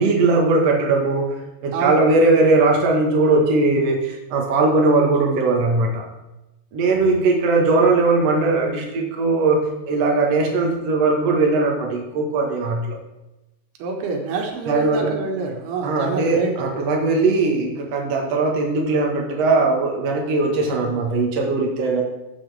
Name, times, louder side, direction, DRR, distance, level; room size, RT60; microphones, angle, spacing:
voice 1, 0.0-1.3 1.6-6.1 6.7-13.0 14.7-15.1 15.8-22.0, right 3 dB, 85° right, 1 dB, 1.4 m, -19 dB
voice 2, 1.7-2.1 13.8-16.7, right 4 dB, 70° right, 2 dB, 3.3 m, -26 dB
13.5 x 8.6 x 3.4 m, 0.99 s
omnidirectional pair, 5.1 m